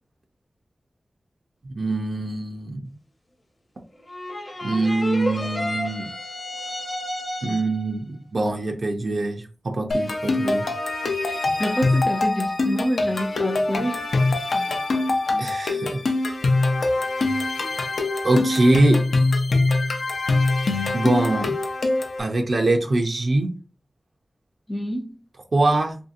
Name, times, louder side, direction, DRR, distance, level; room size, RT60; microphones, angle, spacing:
voice 1, 1.7-2.9 4.6-6.1 7.4-10.6 15.4-16.0 18.2-19.0 20.9-21.6 22.2-23.5 25.5-26.0, right 2 dB, 60° right, 0.4 m, -23 dB
sound 1, 4.1-7.9, left 1 dB, 40° left, 0.7 m, -31 dB
sound 2, 9.9-22.2, left 2 dB, 85° left, 0.5 m, -23 dB
voice 2, 11.3-14.0 18.3-18.4 24.7-25.1, equal, 15° left, 0.4 m, -27 dB
3.0 x 2.7 x 2.5 m
wide cardioid pair, 85°, 0 cm